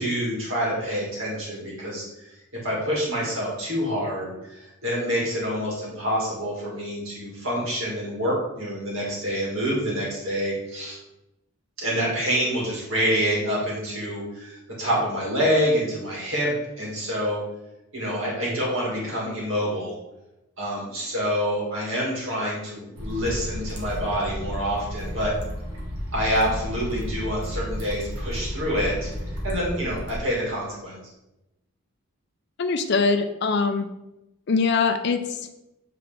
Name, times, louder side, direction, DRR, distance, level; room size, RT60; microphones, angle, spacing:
voice 1, 0.0-11.0 11.8-17.4 17.9-20.0 20.6-25.3 26.1-29.1 29.4-31.0, equal, 60° right, -4 dB, 2.2 m, -27 dB
sound 1, 22.9-30.2, equal, 85° right, 1.4 m, -32 dB
voice 2, 32.6-33.9 34.5-35.4, left 4 dB, 50° left, 7 dB, 0.4 m, -22 dB
7.7 x 3.7 x 3.4 m, 0.92 s
head